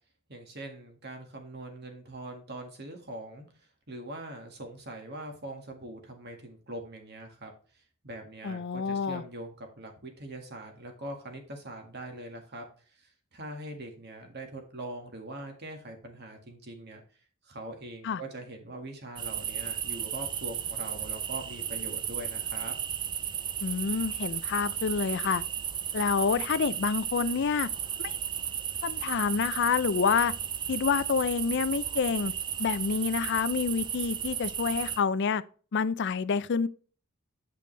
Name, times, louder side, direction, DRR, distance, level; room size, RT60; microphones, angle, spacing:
voice 1, 0.3-3.5 3.9-7.5 8.0-12.7 12.9-17.0 17.4-22.7, right 1 dB, 50° right, 1.8 m, -42 dB
voice 2, 8.4-9.2 18.0-18.2 23.6-25.4 25.9-27.7 28.0-28.2 28.8-30.3 30.7-32.3 32.6-35.4 35.7-36.7, left 5 dB, 55° left, 0.4 m, -28 dB
sound 1, 19.2-35.0, right 8 dB, 20° right, 0.3 m, -34 dB
9.1 x 5.2 x 3.3 m
head